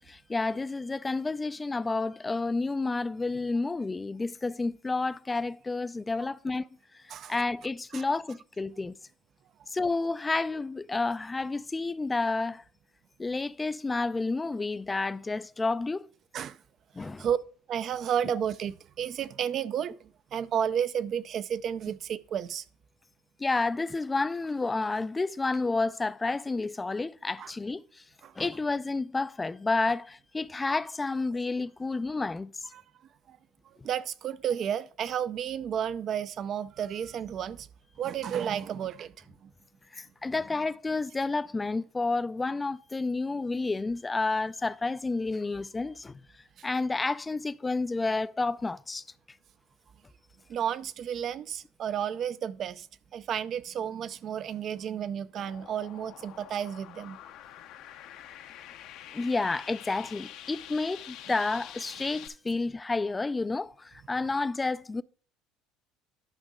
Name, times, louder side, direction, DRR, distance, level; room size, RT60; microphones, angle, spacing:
voice 1, 0.1-6.7 7.3-8.9 9.7-12.6 13.2-16.1 17.0-17.3 23.4-27.8 28.4-32.5 33.8-33.9 39.9-46.2 46.6-49.0 59.1-65.0, left 3 dB, 15° left, 0.4 m, -30 dB
voice 2, 17.0-17.4 17.7-22.6 27.4-27.5 28.2-28.3 32.7-32.8 33.3-33.4 33.8-37.7 38.0-39.1 39.4-39.5 46.6-46.7 50.5-52.9 53.1-57.2, right 9 dB, 50° right, 0.5 m, -32 dB
sound 1, 55.4-62.3, left 11 dB, 65° left, 0.7 m, -46 dB
11.5 x 5.4 x 3.7 m
supercardioid pair, 95°, 0 cm